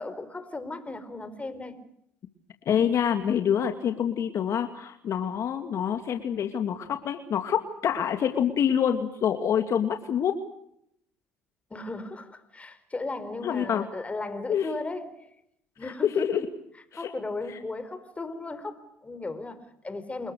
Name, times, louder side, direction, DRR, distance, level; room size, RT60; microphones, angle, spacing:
voice 1, 0.0-1.8 11.7-15.3 15.8-16.2 16.9-20.3, left 3 dB, 20° left, 4.8 m, -36 dB
voice 2, 2.7-10.4 13.4-13.8 14.5-14.8 15.8-16.5 16.9-17.1, left 8 dB, 55° left, 2.5 m, -26 dB
29.0 x 21.0 x 6.5 m
supercardioid pair, 70°, 6 cm